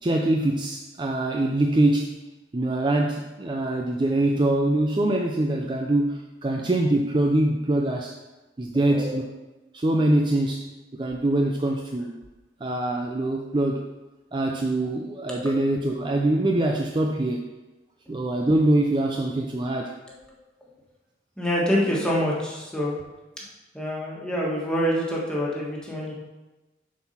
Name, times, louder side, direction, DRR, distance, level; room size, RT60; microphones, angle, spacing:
voice 1, 0.0-2.2 2.5-8.2 8.6-9.2 9.7-12.2 12.6-13.8 14.3-17.5 18.1-20.0, right 1 dB, 25° right, 1 dB, 0.4 m, -24 dB
voice 2, 21.4-23.0 23.7-26.1, equal, 5° left, -5 dB, 1.6 m, -26 dB
7.2 x 4.5 x 5.7 m, 1.1 s
head